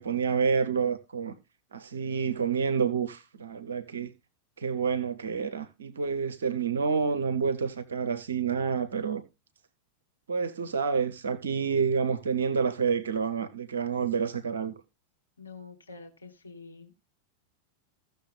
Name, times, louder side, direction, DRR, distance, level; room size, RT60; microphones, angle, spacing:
voice 1, 0.0-1.4 1.7-4.1 4.6-9.2 10.3-14.7, right 6 dB, 65° right, 0.8 m, -28 dB
voice 2, 15.4-16.9, left 4 dB, 80° left, 1.3 m, -47 dB
16.0 x 6.6 x 3.3 m
figure-of-eight pair, 90°, 0 cm